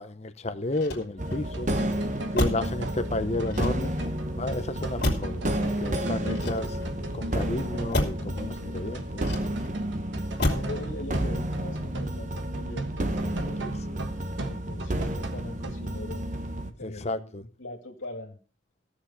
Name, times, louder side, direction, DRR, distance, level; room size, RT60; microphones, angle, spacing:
voice 1, 0.0-1.7 2.3-3.9 4.4-6.8 7.1-9.2 13.6-13.7 16.8-17.4, left 2 dB, 35° left, 0.8 m, -32 dB
Motor vehicle (road), 0.7-1.5 2.3-2.8 3.5-4.2 5.0-5.5 6.3-7.0 7.9-8.3 9.2-9.8 10.4-10.8 11.1-11.6, left 1 dB, 60° left, 2.8 m, -30 dB
sound 1, 1.2-16.7, right 1 dB, 40° right, 1.1 m, -31 dB
sound 2, 1.5-15.8, right 1 dB, 65° right, 1.3 m, -38 dB
voice 2, 10.4-13.7 14.4-16.4 16.6-18.4, left 1 dB, 85° left, 2.2 m, -41 dB
16.0 x 6.8 x 5.6 m
head